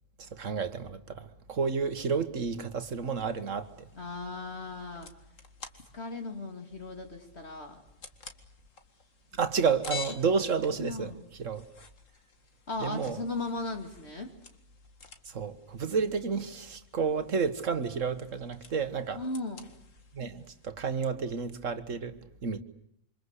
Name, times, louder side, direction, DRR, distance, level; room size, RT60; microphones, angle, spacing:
voice 1, 0.2-3.7 9.4-11.1 11.4-11.6 12.8-13.2 15.3-19.2 20.1-22.1 22.4-22.6, right 5 dB, 75° right, 1.9 m, -31 dB
sound 1, 2.7-20.7, left 5 dB, 80° left, 2.4 m, -50 dB
voice 2, 3.9-5.1 5.9-7.8 10.8-11.2 12.7-14.3 19.1-19.7, left 2 dB, 55° left, 2.8 m, -37 dB
27.5 x 25.5 x 8.2 m
omnidirectional pair, 1.3 m